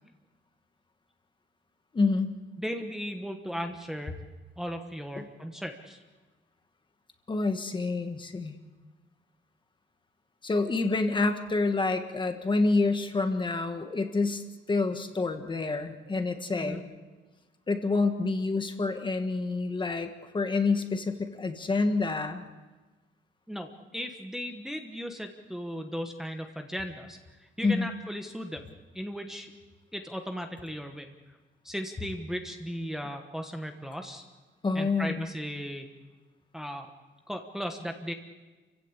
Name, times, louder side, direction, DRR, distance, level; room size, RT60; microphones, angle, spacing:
voice 1, 1.9-2.3 5.2-5.3 7.3-8.5 10.4-16.8 17.7-22.4 27.6-27.9 34.6-35.3, left 3 dB, 25° left, 7 dB, 1.5 m, -28 dB
voice 2, 2.6-4.2 4.6-6.0 16.6-16.8 23.5-28.7 28.9-29.5 29.9-31.1 31.6-34.2 34.7-35.9 36.5-36.9 37.3-38.1, equal, ahead, 4 dB, 1.2 m, -36 dB
29.0 x 16.0 x 8.2 m, 1.3 s
wide cardioid pair, 155°, 20 cm